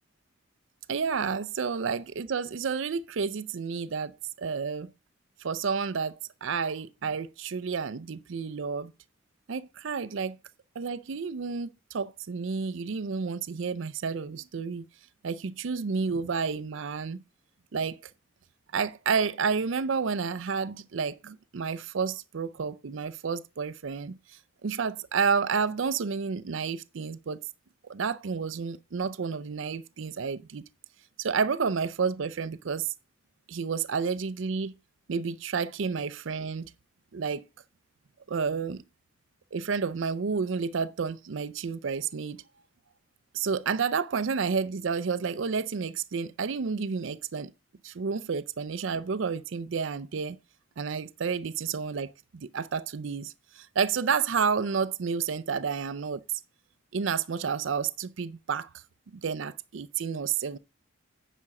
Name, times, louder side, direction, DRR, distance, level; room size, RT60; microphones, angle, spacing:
voice 1, 0.9-4.9 5.4-8.9 9.5-10.4 10.8-14.9 15.2-17.2 17.7-18.0 18.7-24.2 24.6-27.4 27.8-30.6 31.2-32.9 33.5-34.7 35.1-36.7 37.1-37.5 38.3-38.8 39.5-42.4 43.3-47.5 47.8-50.4 50.8-56.2 56.9-58.7 59.2-60.6, right 5 dB, 65° right, 0.5 m, -30 dB
9.9 x 5.0 x 4.8 m
head